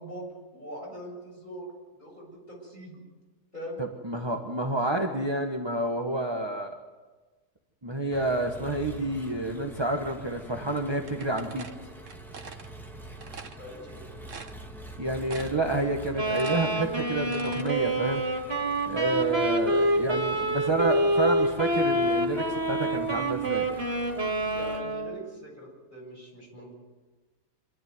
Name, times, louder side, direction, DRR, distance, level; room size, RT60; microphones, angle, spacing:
voice 1, 0.0-1.7 2.0-3.0 3.5-3.8 5.0-5.1 13.6-14.1 24.5-26.7, equal, 30° left, -2 dB, 7.8 m, -42 dB
voice 2, 3.8-6.8 7.8-11.7 15.0-18.2 18.9-23.7, right 2 dB, 20° right, 2 dB, 1.3 m, -29 dB
Engine, 8.1-24.8, right 1 dB, ahead, 2.0 m, -46 dB
sound 1, 11.1-12.7 13.2-13.6 14.0-14.1 14.3-14.9 15.3-15.7 16.0-17.7, right 5 dB, 60° right, 1.6 m, -44 dB
Wind instrument woodwind instrument, 16.1-25.2, right 1 dB, 45° right, 2.9 m, -27 dB
26.5 x 12.5 x 9.5 m, 1.3 s
omnidirectional pair, 1.5 m